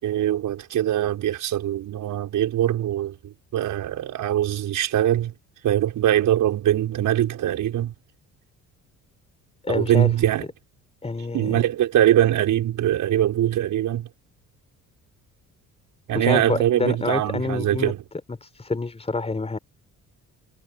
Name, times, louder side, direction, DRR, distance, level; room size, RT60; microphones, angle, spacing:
voice 1, 0.0-5.3 5.6-7.9 9.7-10.5 11.3-14.1 16.1-18.0, right 12 dB, 70° right, 6.4 m, -22 dB
voice 2, 9.6-10.1 11.0-11.6 16.1-17.9 18.4-19.6, left 3 dB, 20° left, 4.8 m, -27 dB
cardioid pair, 115°, 32 cm